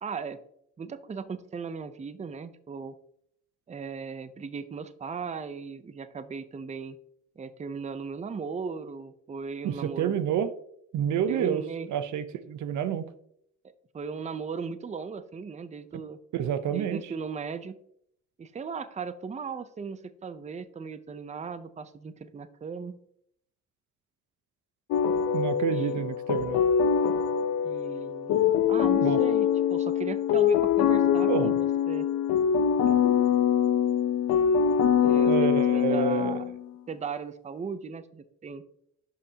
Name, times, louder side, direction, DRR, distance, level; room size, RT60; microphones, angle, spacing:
voice 1, 0.0-0.4 0.8-3.0 3.7-7.0 7.4-10.2 11.3-11.9 13.9-16.2 16.7-17.8 18.4-23.0 25.7-26.1 27.6-32.1 32.8-33.1 35.0-36.4 36.9-38.6, right 5 dB, 25° right, 13 dB, 0.6 m, -37 dB
voice 2, 9.6-10.5 10.9-13.1 16.3-17.1 25.3-26.6 29.0-29.2 31.3-31.6 35.3-36.4, right 9 dB, 75° right, 12 dB, 0.7 m, -29 dB
sound 1, 24.9-36.6, left 8 dB, 70° left, 0.7 m, -24 dB
11.5 x 5.5 x 2.8 m, 0.70 s
cardioid pair, 90°, 30 cm